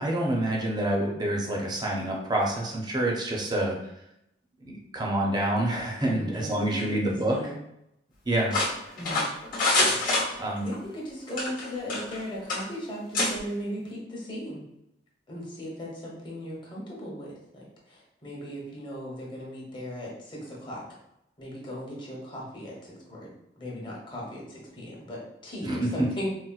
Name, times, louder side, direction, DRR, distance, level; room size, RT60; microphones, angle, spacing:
voice 1, 0.0-3.8 4.6-7.4 8.3-8.6 10.4-10.7 25.6-26.1, right 1 dB, 25° right, -2 dB, 0.5 m, -27 dB
voice 2, 6.1-7.6 9.0-9.3 10.3-14.6 15.3-20.8 21.4-23.3 23.6-26.3, equal, 30° left, -4 dB, 0.9 m, -37 dB
sound 1, 8.5-10.8 11.3-12.2 12.5-12.6 13.1-13.3, left 2 dB, 50° left, 1.0 m, -26 dB
4.1 x 2.0 x 2.3 m, 0.81 s
head